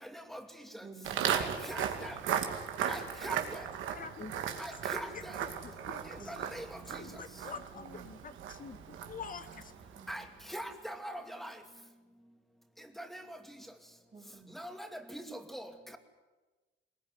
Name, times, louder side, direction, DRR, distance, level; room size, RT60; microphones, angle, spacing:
voice 1, 0.8-1.2 6.2-6.4 7.8-8.1 10.0-10.1 14.1-14.6, right 4 dB, 35° right, -2 dB, 3.3 m, -51 dB
Walk footsteps, 1.0-10.3, right 8 dB, 85° right, 2.5 m, -37 dB
voice 2, 1.3-2.1 2.9-3.4 4.6-5.1 6.3-6.6 6.9-7.0 10.1-10.2 10.5-11.5 13.0-13.2 14.6-14.9 15.1-15.2 15.5-15.7, equal, ahead, 6 dB, 2.6 m, -41 dB
voice 3, 3.9-4.3 5.1-6.5 7.0-9.7, left 5 dB, 45° left, 10 dB, 1.8 m, -46 dB
20.5 x 20.5 x 9.7 m, 1.2 s
cardioid pair, 90°, 20 cm